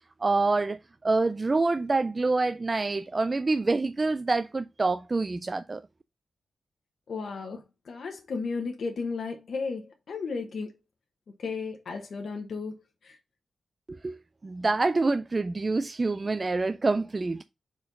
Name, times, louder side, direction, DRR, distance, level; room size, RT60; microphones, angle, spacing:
voice 1, 0.2-5.8 13.9-14.2 14.4-17.4, right 3 dB, 25° right, 0.3 m, -26 dB
voice 2, 7.1-10.7 11.4-13.2, left 4 dB, 65° left, 1.0 m, -34 dB
4.7 x 4.3 x 5.3 m
wide cardioid pair, 150°, 0 cm